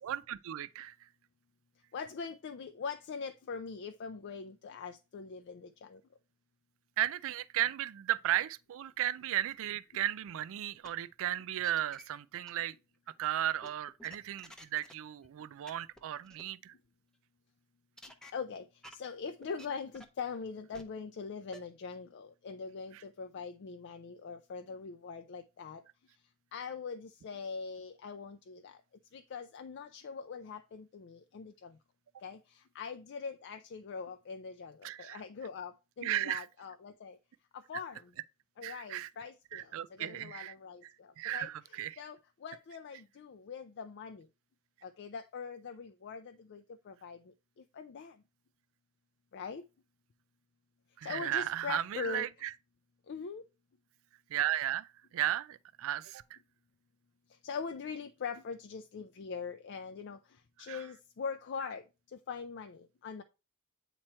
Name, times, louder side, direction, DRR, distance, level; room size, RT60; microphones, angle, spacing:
voice 1, 0.1-1.0 7.0-12.7 13.2-16.7 22.9-23.0 34.8-35.2 36.0-36.5 38.6-39.1 39.5-40.5 41.2-42.0 51.0-52.5 54.3-56.4 60.6-60.8, right 12 dB, 65° right, 0.4 m, -35 dB
voice 2, 1.9-6.0 18.1-25.8 26.5-28.8 29.1-31.8 32.2-37.2 37.5-38.1 38.6-44.3 44.8-48.2 49.3-49.7 51.0-52.3 53.1-53.4 57.3-63.2, left 5 dB, 50° left, 0.4 m, -42 dB
sound 1, 10.8-10.9 11.4-12.0 12.5-12.6 13.6-14.9 15.2-15.3 15.7-15.8 16.0-16.1 16.2-16.4 18.0-18.3 18.8-18.9 19.4-19.7 19.9-20.2 20.7-20.8 21.5-21.6, equal, 5° left, 0.7 m, -51 dB
8.7 x 3.0 x 4.2 m
head